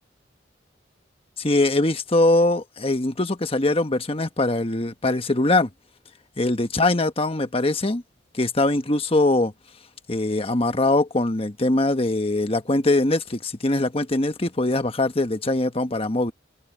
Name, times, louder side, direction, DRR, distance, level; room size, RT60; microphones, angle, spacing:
voice 1, 1.4-5.7 6.4-8.0 8.3-9.5 10.1-16.3, left 2 dB, 30° left, 1.3 m, -22 dB
head